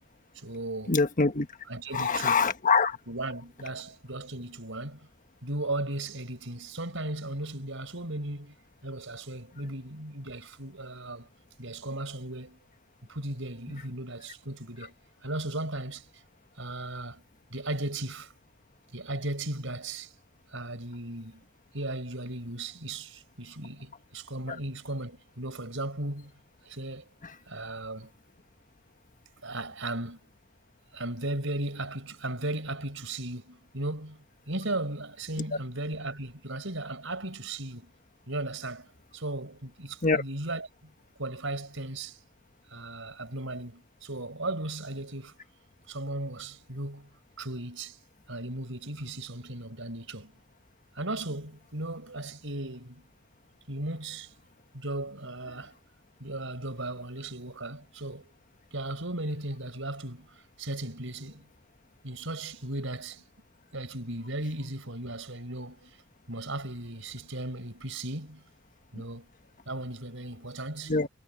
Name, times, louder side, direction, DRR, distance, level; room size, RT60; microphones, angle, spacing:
voice 1, 0.3-1.0 1.7-2.5 3.1-5.1 5.4-8.6 8.8-11.3 11.6-12.6 13.1-14.9 15.2-16.2 16.6-17.2 17.5-18.3 18.9-20.1 20.5-21.4 21.7-26.3 26.6-27.1 27.5-28.1 29.4-30.2 30.9-37.9 38.3-40.9 41.2-42.2 42.7-45.4 45.9-47.1 47.4-48.0 48.3-50.4 50.9-53.1 53.7-54.3 54.7-55.8 56.2-58.3 58.7-61.4 62.0-63.2 63.7-66.0 66.3-68.4 68.9-69.3 69.7-71.0, right 2 dB, 70° right, 6.5 m, -36 dB
voice 2, 0.9-1.5 1.9-3.0 40.0-40.2 70.9-71.1, left 4 dB, 40° left, 1.4 m, -24 dB
head